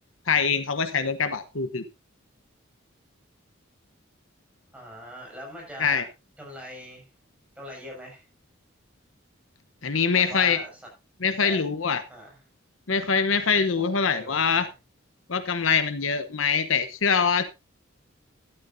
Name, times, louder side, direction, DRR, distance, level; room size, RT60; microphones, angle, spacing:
voice 1, 0.3-1.8 5.8-6.0 9.8-10.6 11.2-12.0 12.9-14.7 15.3-17.4, left 6 dB, 80° left, 11 dB, 1.0 m, -24 dB
voice 2, 4.7-6.1 6.4-7.1 7.6-8.2 10.2-10.9 11.4-11.7 12.1-12.4 13.8-14.7, equal, 5° right, -2 dB, 6.4 m, -42 dB
13.5 x 11.5 x 2.7 m, 0.25 s
head